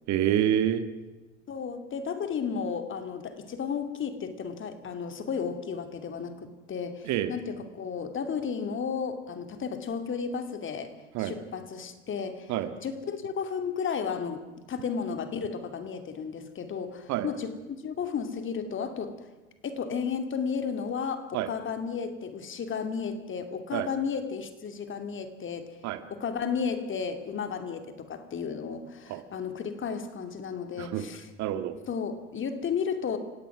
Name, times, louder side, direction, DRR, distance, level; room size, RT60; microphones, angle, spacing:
voice 1, 0.1-0.9 7.0-7.3 11.1-11.4 12.5-12.7 17.1-17.3 21.3-21.5 23.7-23.9 25.8-26.0 29.1-29.2 30.8-31.1 31.4-31.8, right 11 dB, 50° right, 10 dB, 2.0 m, -27 dB
voice 2, 1.5-10.9 11.2-19.2 19.6-25.8 26.1-31.3 31.9-33.2, left 6 dB, 35° left, 9 dB, 2.7 m, -33 dB
29.5 x 17.0 x 6.2 m, 1.2 s
hypercardioid pair, 80°, 36 cm